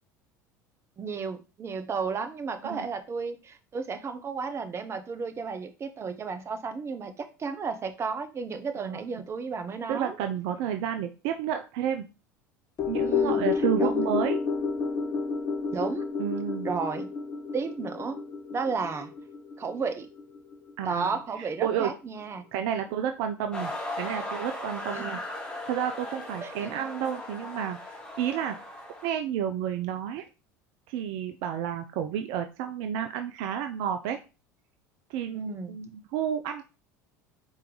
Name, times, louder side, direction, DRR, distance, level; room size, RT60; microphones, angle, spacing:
voice 1, 1.0-10.2 13.0-13.5 13.8-13.9 15.7-16.0 16.6-17.1 17.5-18.2 18.5-19.1 19.6-20.1 20.8-22.4 24.9-25.1 26.4-26.9 35.3-35.7, right 5 dB, 30° right, 8 dB, 0.7 m, -33 dB
voice 2, 9.9-12.1 12.9-14.4 16.2-16.7 20.8-21.9 22.5-23.7 24.0-25.2 25.7-27.8 28.2-28.6 29.0-30.2 30.9-34.2 35.1-36.6, right 9 dB, 55° right, 7 dB, 0.4 m, -31 dB
sound 1, 12.8-21.2 21.5-21.6, left 5 dB, 35° left, 0.7 m, -30 dB
sound 2, 23.5-29.1, left 1 dB, 10° left, 1.4 m, -37 dB
4.5 x 3.1 x 3.8 m, 0.31 s
figure-of-eight pair, 70°, 9 cm